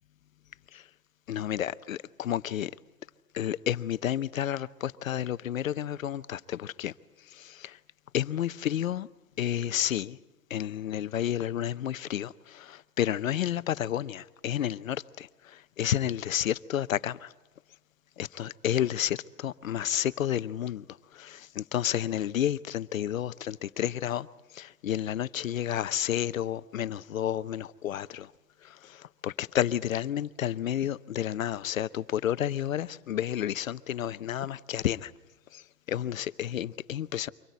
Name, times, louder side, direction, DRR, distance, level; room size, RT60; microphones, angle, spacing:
voice 1, 1.3-2.7 3.4-6.9 8.1-9.1 9.4-10.1 10.5-12.3 13.0-15.0 15.8-17.1 18.2-19.2 19.4-20.8 21.6-24.2 24.8-28.2 29.2-35.0 35.9-37.3, left 11 dB, 60° left, 0.8 m, -30 dB
25.0 x 17.0 x 9.4 m
hypercardioid pair, 165°, 46 cm